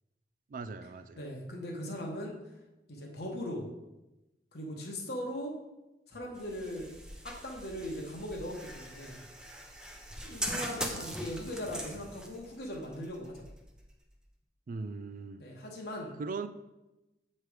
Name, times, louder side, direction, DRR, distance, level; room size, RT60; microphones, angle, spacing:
voice 1, 0.5-1.2 14.7-15.4 16.2-16.5, right 4 dB, 50° right, 12 dB, 0.3 m, -39 dB
voice 2, 1.2-2.4 2.9-3.7 4.5-5.6 6.1-6.9 7.2-9.2 10.2-13.5 15.4-16.1, equal, 60° left, -1 dB, 1.0 m, -39 dB
sound 1, 6.3-14.2, equal, 5° right, 0.5 m, -41 dB
7.5 x 3.2 x 4.9 m, 1.0 s
head